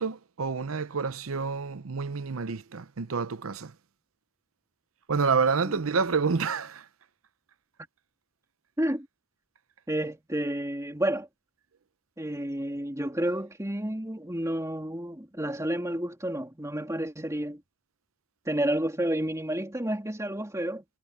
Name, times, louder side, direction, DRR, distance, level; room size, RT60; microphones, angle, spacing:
voice 1, 0.0-3.7 5.1-6.9, right 5 dB, 85° right, 0.7 m, -28 dB
voice 2, 9.9-11.3 12.2-17.6 18.4-20.8, right 1 dB, 15° right, 2.9 m, -30 dB
head